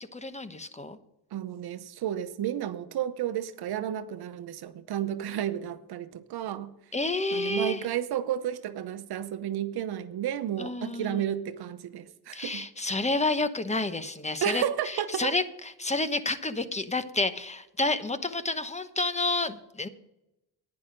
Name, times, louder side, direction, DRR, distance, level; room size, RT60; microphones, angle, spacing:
voice 1, 0.1-1.0 6.9-7.8 10.6-11.2 12.3-19.9, left 2 dB, 20° left, 11 dB, 1.0 m, -30 dB
voice 2, 1.3-6.7 7.3-12.7 14.4-15.3, right 10 dB, 85° right, 11 dB, 0.9 m, -32 dB
10.5 x 9.8 x 5.2 m, 0.86 s
cardioid pair, 75°, 37 cm